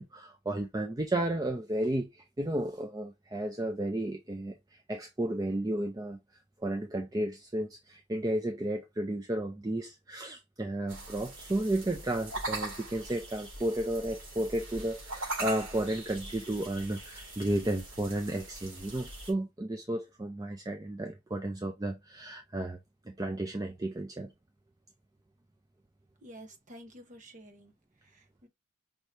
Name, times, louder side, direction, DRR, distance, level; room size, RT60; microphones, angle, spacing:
voice 1, 0.0-6.2 6.6-22.8 23.1-24.3, right 1 dB, 15° right, 0.4 m, -33 dB
sound 1, 10.9-19.3, right 2 dB, 65° right, 2.7 m, -41 dB
voice 2, 26.2-27.7 28.0-28.5, right 1 dB, 35° right, 0.9 m, -50 dB
5.4 x 2.7 x 3.2 m
head